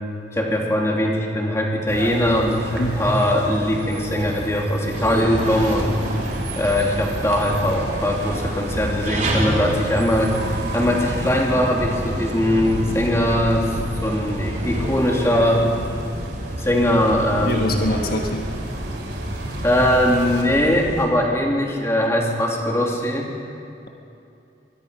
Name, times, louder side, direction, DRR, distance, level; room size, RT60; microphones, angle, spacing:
voice 1, 0.3-6.0 6.6-15.7 16.6-17.8 19.6-23.3, equal, 15° left, -1 dB, 3.1 m, -21 dB
sound 1, 1.9-20.4, right 1 dB, 85° right, 3.7 m, -32 dB
voice 2, 2.7-3.1 6.1-6.5 17.5-18.5, left 1 dB, 60° left, 2 dB, 1.4 m, -26 dB
sound 2, 4.9-21.1, equal, 45° right, 3.6 m, -30 dB
25.0 x 22.0 x 5.3 m, 2.7 s
head